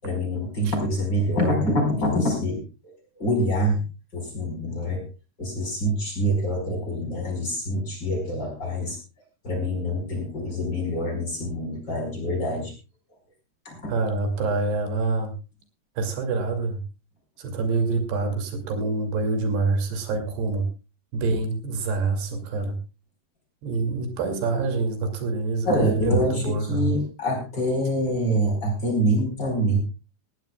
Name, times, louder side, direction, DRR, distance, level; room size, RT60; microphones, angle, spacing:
voice 1, 0.0-2.9 3.2-3.8 4.1-5.0 5.4-9.0 9.4-12.7 13.7-13.9 25.6-29.8, equal, 25° left, 3 dB, 5.2 m, -25 dB
voice 2, 13.9-15.3 16.0-16.8 17.4-20.6 21.1-22.8 23.6-26.9, right 3 dB, 80° right, 6 dB, 4.6 m, -26 dB
20.0 x 16.0 x 2.3 m, 0.29 s
omnidirectional pair, 4.6 m